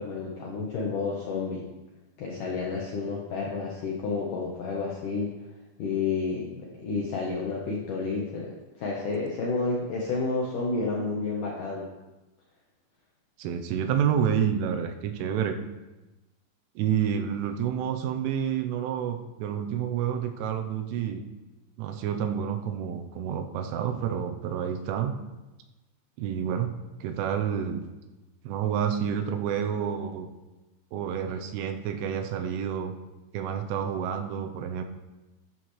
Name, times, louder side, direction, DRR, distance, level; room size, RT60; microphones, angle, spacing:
voice 1, 0.0-1.6 2.2-5.3 5.8-11.9 31.3-31.4, left 4 dB, 75° left, -3 dB, 1.9 m, -30 dB
voice 2, 13.4-15.6 16.8-21.2 21.8-25.1 26.2-26.7 27.0-27.8 28.4-30.3 30.9-33.0 33.3-34.9, right 8 dB, 85° right, 6 dB, 3.4 m, -29 dB
13.0 x 10.5 x 3.3 m, 1.1 s
omnidirectional pair, 5.6 m